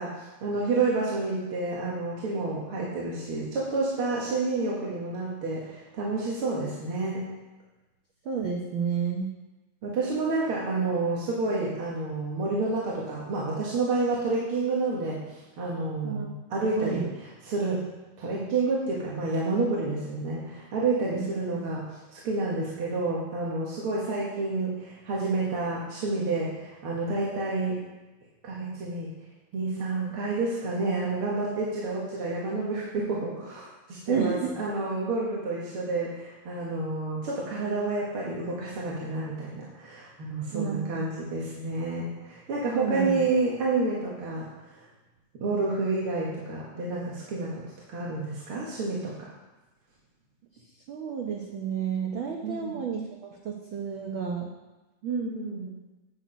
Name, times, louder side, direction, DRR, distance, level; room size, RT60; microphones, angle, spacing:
voice 1, 0.0-7.2 9.8-15.2 15.6-17.8 18.2-21.9 22.1-27.8 28.4-29.1 29.5-44.5 45.4-47.5 47.9-49.3 52.4-52.8 55.0-55.7, right 3 dB, 50° right, -5 dB, 2.0 m, -29 dB
voice 2, 8.2-9.3 16.0-16.3 16.8-17.1 21.1-21.3 21.5-21.6 34.1-34.5 40.5-41.1 42.7-43.2 50.9-53.1 53.4-54.5, right 7 dB, 80° right, 0 dB, 1.1 m, -30 dB
8.8 x 8.3 x 5.2 m, 1.1 s
omnidirectional pair, 3.5 m